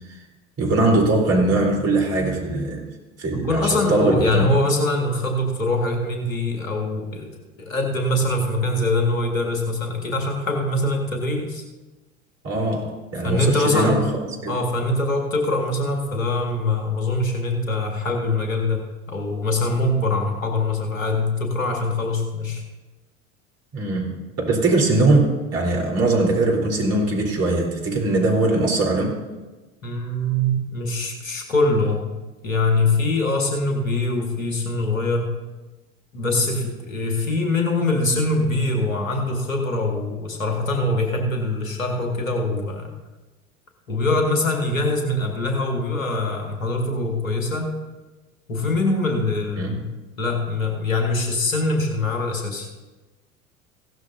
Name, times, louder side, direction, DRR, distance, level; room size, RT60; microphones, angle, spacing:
voice 1, 0.6-2.9 3.2-3.6 3.9-4.5 12.4-14.0 14.4-14.5 23.7-29.1 49.6-49.8, right 2 dB, 35° right, -1 dB, 3.9 m, -21 dB
voice 2, 3.3-7.3 7.6-11.6 13.2-14.0 14.5-22.6 29.8-32.1 32.4-35.3 36.1-42.9 43.9-47.7 48.5-49.9 50.2-52.7, left 2 dB, 80° left, 2 dB, 2.0 m, -23 dB
16.5 x 12.5 x 2.7 m, 1.2 s
figure-of-eight pair, 75°, 39 cm